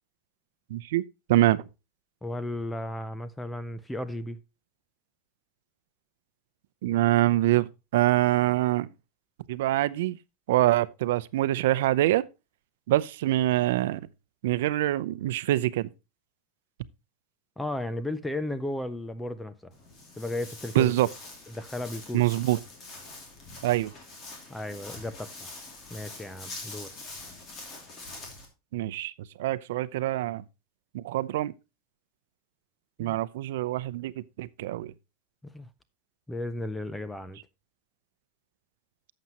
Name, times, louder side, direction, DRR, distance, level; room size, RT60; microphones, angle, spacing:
voice 1, 0.7-1.0 1.3-1.6 6.8-8.9 9.5-10.2 10.5-12.2 12.9-14.0 14.4-15.9 20.7-21.1 22.1-22.6 23.6-23.9 28.7-29.1 29.4-30.4 30.9-31.5 33.0-34.9, right 15 dB, 70° right, 0.6 m, -25 dB
voice 2, 2.2-4.4 17.6-19.7 20.2-20.9 21.5-22.2 24.5-25.6 25.9-26.9 33.0-33.2 35.4-35.7 36.3-37.4, left 1 dB, 5° left, 0.5 m, -34 dB
Walk footsteps, 19.7-28.5, left 3 dB, 25° left, 2.7 m, -44 dB
11.5 x 7.6 x 2.9 m
supercardioid pair, 170°, 0 cm